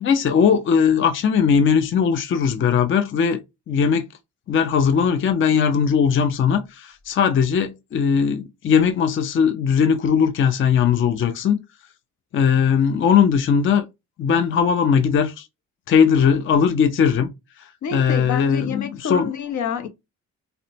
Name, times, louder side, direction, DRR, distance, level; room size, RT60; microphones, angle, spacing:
voice 1, 0.0-3.4 3.7-4.1 4.5-11.6 12.3-13.8 14.2-15.5 15.9-17.3 17.9-19.3, left 7 dB, 40° left, 0.5 m, -19 dB
voice 2, 17.8-19.9, left 7 dB, 70° left, 0.8 m, -28 dB
3.9 x 2.1 x 2.6 m
cardioid pair, 90°, 30 cm